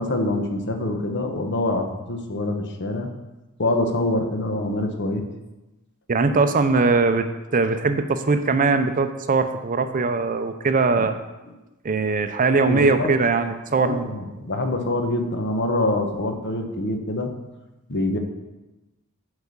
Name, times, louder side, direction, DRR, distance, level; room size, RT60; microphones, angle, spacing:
voice 1, 0.0-3.1 3.6-5.2 10.9-11.1 12.7-13.1 13.7-17.3 17.9-18.2, left 2 dB, 55° left, 5 dB, 1.1 m, -25 dB
voice 2, 6.1-7.3 7.5-11.2 11.8-14.1, right 4 dB, 40° right, 9 dB, 0.6 m, -21 dB
8.0 x 4.9 x 7.1 m, 1.0 s
head